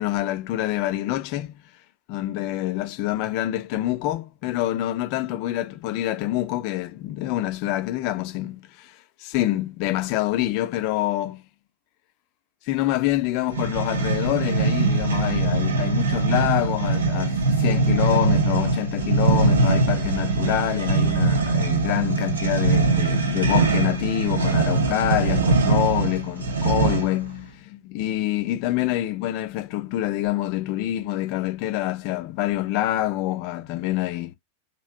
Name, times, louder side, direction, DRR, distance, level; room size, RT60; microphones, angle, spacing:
voice 1, 0.0-1.6 2.1-11.4 12.7-34.3, left 14 dB, 45° left, 0.5 m, -26 dB
sound 1, 13.5-27.2, right 3 dB, 70° right, 0.6 m, -22 dB
2.9 x 2.8 x 2.6 m
figure-of-eight pair, 90°, 0 cm